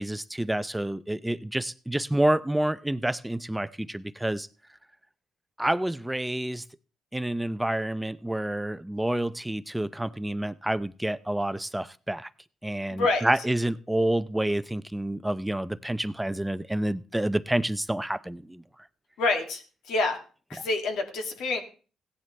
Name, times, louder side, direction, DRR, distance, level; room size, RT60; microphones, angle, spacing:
voice 1, 0.0-4.5 5.6-6.6 7.1-12.3 12.6-18.6, right 1 dB, 5° right, 14 dB, 0.5 m, -28 dB
voice 2, 12.9-13.2 19.2-19.6 19.9-20.2 20.5-21.6, left 3 dB, 85° left, 3 dB, 2.4 m, -26 dB
16.5 x 10.5 x 3.3 m, 0.38 s
cardioid pair, 90°, 0 cm